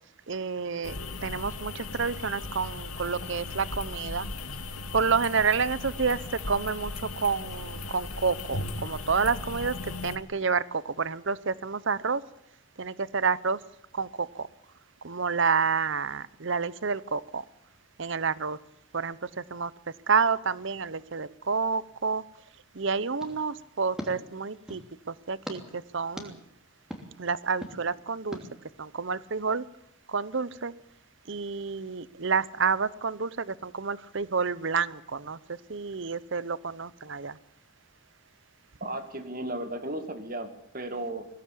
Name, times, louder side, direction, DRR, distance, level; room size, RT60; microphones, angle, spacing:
voice 1, 0.3-4.3 4.9-12.2 12.8-13.6 13.9-14.5 15.0-17.4 18.0-18.6 18.9-19.7 20.1-22.2 22.7-26.4 27.2-28.4 28.8-29.7 30.1-30.7 31.3-37.4, right 5 dB, 55° right, 18 dB, 0.7 m, -29 dB
sound 1, 0.8-10.2, left 3 dB, 85° left, 2.1 m, -37 dB
sound 2, 23.2-24.9 25.5-25.6 26.2-26.3 26.9-27.0 27.6-27.8 28.3-28.4, equal, 5° right, 2.9 m, -40 dB
voice 2, 38.8-40.5 40.7-41.3, right 1 dB, 40° right, 8 dB, 2.1 m, -34 dB
21.5 x 17.5 x 8.6 m, 0.77 s
head